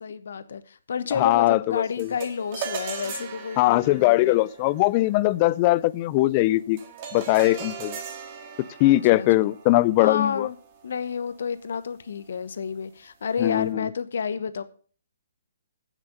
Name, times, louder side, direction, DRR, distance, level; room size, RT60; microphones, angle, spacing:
voice 1, 0.0-4.4 8.8-9.5 10.0-10.6 10.8-14.6, left 6 dB, 65° left, 1.1 m, -30 dB
voice 2, 1.2-2.1 3.6-6.8 7.1-8.0 8.8-10.5 13.4-13.7, left 18 dB, 30° left, 0.4 m, -21 dB
sound 1, 2.0-11.5, right 6 dB, 35° right, 2.3 m, -39 dB
8.9 x 8.0 x 6.6 m
hypercardioid pair, 145°, 0 cm